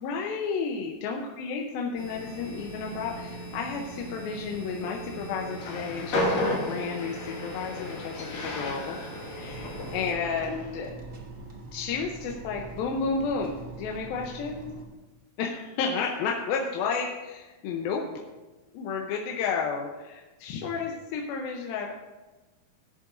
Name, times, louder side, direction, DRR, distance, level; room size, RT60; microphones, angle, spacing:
voice 1, 0.0-6.3 6.6-9.0 9.3-10.9 11.7-14.7 15.4-18.0 18.7-21.9, left 5 dB, 80° left, 1 dB, 2.6 m, -32 dB
sound 1, 2.0-10.1, right 1 dB, 25° left, 2.9 m, -41 dB
Train, 5.5-10.8, left 1 dB, 55° left, 2.8 m, -33 dB
sound 2, 9.5-14.8, right 3 dB, 75° right, 0.7 m, -43 dB
17.5 x 10.5 x 2.6 m, 1.2 s
omnidirectional pair, 4.3 m